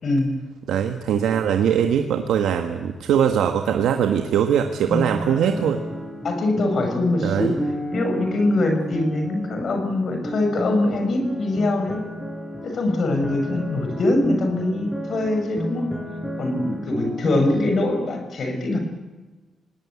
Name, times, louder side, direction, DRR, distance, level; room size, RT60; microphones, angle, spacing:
voice 1, 0.7-5.8 7.2-7.5, right 8 dB, 85° right, 6 dB, 1.5 m, -21 dB
sound 1, 4.5-17.6, equal, 10° left, 7.8 m, -32 dB
voice 2, 6.2-7.5 7.9-12.0 12.6-15.9 16.4-18.8, left 2 dB, 60° left, 4 dB, 6.0 m, -23 dB
25.5 x 19.5 x 8.6 m, 1.3 s
cardioid pair, 75°, 0 cm